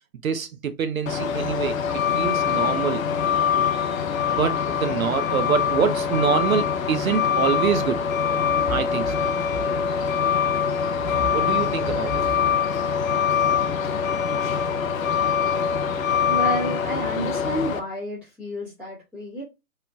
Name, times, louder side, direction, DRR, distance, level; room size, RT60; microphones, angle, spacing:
voice 1, 0.2-1.8 2.1-3.0 4.3-8.1 8.7-9.1 11.3-12.2, right 7 dB, 65° right, 0.5 m, -25 dB
Truck, 1.1-17.8, left 7 dB, 60° left, 0.5 m, -24 dB
voice 2, 16.3-19.4, right 1 dB, ahead, 0.6 m, -30 dB
2.8 x 2.3 x 2.5 m
figure-of-eight pair, 135°, 46 cm